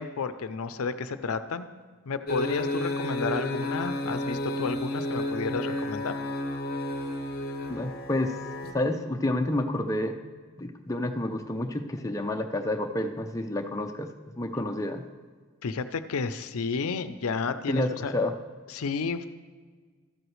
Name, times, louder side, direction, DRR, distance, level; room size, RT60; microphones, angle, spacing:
voice 1, 0.0-1.7 2.1-6.2 15.6-18.1 18.7-19.3, left 5 dB, 75° left, 11 dB, 0.5 m, -31 dB
sound 1, 2.3-8.7, left 1 dB, 40° left, 0.8 m, -32 dB
voice 2, 7.7-8.4 8.7-10.2 10.6-15.0 17.7-18.3, left 1 dB, 15° left, 4 dB, 0.4 m, -29 dB
12.5 x 7.9 x 3.2 m, 1.5 s
head